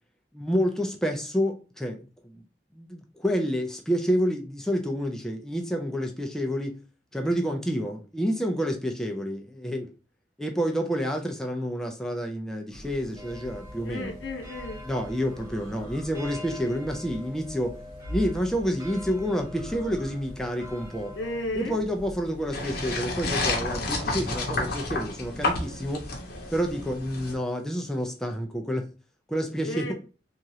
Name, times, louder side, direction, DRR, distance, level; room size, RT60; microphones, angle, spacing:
voice 1, 0.3-2.0 2.2-2.4 2.7-6.8 7.1-9.9 10.4-14.1 14.8-17.8 18.1-21.1 21.5-26.1 26.5-28.9 29.3-29.9, equal, 5° left, 2 dB, 0.3 m, -29 dB
sound 1, 12.7-24.6, equal, 45° right, 1.4 m, -43 dB
sound 2, 13.2-21.4, left 2 dB, 15° right, 0.7 m, -45 dB
voice 2, 13.8-14.8 21.1-21.8 29.6-29.9, left 1 dB, 90° left, 3 dB, 0.7 m, -33 dB
sound 3, 22.5-27.3, left 2 dB, 55° left, 0.8 m, -30 dB
3.0 x 2.4 x 2.7 m, 0.35 s
head